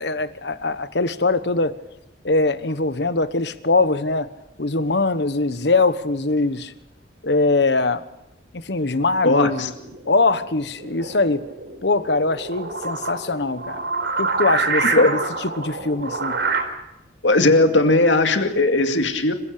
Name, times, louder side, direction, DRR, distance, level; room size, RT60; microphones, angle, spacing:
voice 1, 0.0-1.7 2.2-4.3 4.6-6.7 7.2-8.0 8.5-9.7 10.1-11.4 11.8-13.8 14.2-16.4, left 3 dB, 70° left, 13 dB, 1.2 m, -22 dB
voice 2, 9.2-9.7 15.0-15.1 17.2-19.3, left 2 dB, 85° left, 6 dB, 2.3 m, -17 dB
sound 1, 9.7-16.6, right 3 dB, 70° right, 4.0 m, -27 dB
27.0 x 16.0 x 6.8 m, 0.88 s
head